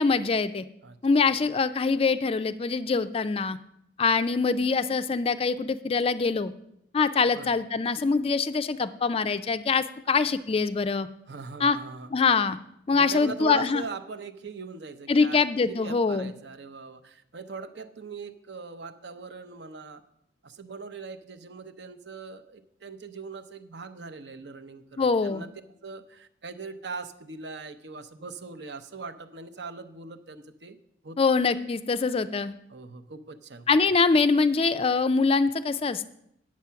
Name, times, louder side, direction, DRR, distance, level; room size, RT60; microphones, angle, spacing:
voice 1, 0.0-0.6 1.0-3.6 4.0-6.5 6.9-11.1 11.6-11.8 12.1-12.6 12.9-13.8 15.1-16.3 25.0-25.4 31.2-32.5 33.7-36.1, left 4 dB, 30° left, 12 dB, 0.3 m, -24 dB
voice 2, 0.8-1.4 7.3-7.6 11.3-12.1 12.9-20.0 20.4-25.5 25.8-30.8 31.0-31.2 32.7-33.7, right 4 dB, 60° right, 9 dB, 0.7 m, -41 dB
9.4 x 7.5 x 5.7 m, 0.75 s
head